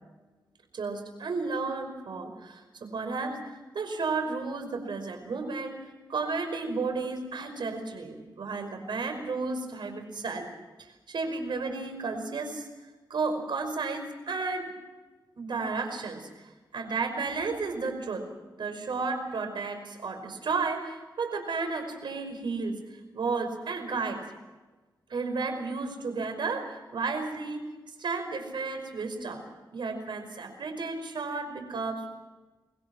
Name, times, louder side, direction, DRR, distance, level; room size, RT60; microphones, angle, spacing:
voice 1, 0.7-5.8 6.1-10.5 11.1-12.7 13.1-14.7 15.4-16.3 16.7-18.3 18.6-22.8 23.1-24.2 25.1-27.7 28.0-29.4 29.7-32.1, right 4 dB, 75° right, 6 dB, 5.3 m, -32 dB
25.0 x 21.0 x 6.2 m, 1.2 s
cardioid pair, 65°, 8 cm